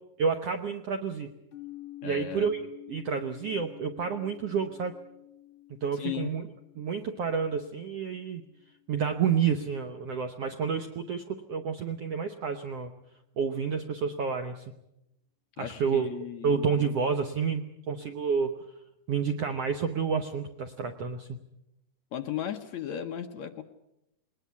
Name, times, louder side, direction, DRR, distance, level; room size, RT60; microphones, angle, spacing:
voice 1, 0.2-1.3 2.0-2.6 2.9-5.0 5.8-6.5 6.8-8.4 8.9-12.9 13.4-14.6 15.6-18.5 19.1-21.4, right 6 dB, 70° right, 7 dB, 1.5 m, -29 dB
sound 1, 1.5-9.3, left 15 dB, 35° left, 3.0 m, -49 dB
voice 2, 2.0-2.5 5.9-6.4 15.6-16.6 22.1-23.6, left 10 dB, 65° left, 6 dB, 2.0 m, -36 dB
21.5 x 19.5 x 8.3 m, 0.85 s
omnidirectional pair, 4.0 m